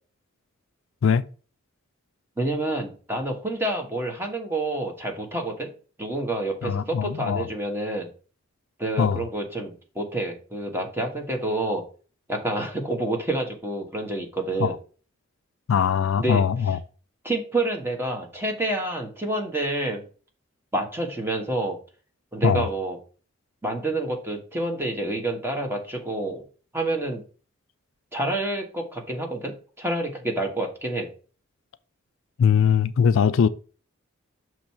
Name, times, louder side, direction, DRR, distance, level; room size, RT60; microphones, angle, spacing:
voice 1, 2.4-5.7 6.0-8.1 8.8-11.8 12.3-14.8 16.2-16.4 17.2-20.0 20.7-21.8 22.3-23.0 23.6-26.4 26.7-27.2 28.1-31.1, right 2 dB, 10° right, 1.4 m, -28 dB
voice 2, 6.6-7.5 9.0-9.2 14.6-14.8 15.7-16.8 22.4-22.6 32.4-33.5, left 7 dB, 65° left, 0.4 m, -21 dB
6.5 x 3.2 x 5.8 m
head